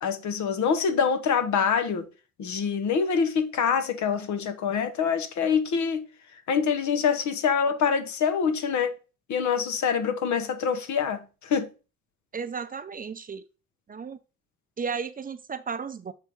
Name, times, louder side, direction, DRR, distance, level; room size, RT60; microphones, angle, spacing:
voice 1, 0.0-2.1 2.4-6.1 6.3-8.9 9.3-11.7, left 6 dB, 70° left, 1.1 m, -25 dB
voice 2, 12.3-13.4 13.9-14.2 14.8-16.1, right 6 dB, 30° right, 0.5 m, -34 dB
6.8 x 3.5 x 4.5 m
cardioid pair, 90°, 30 cm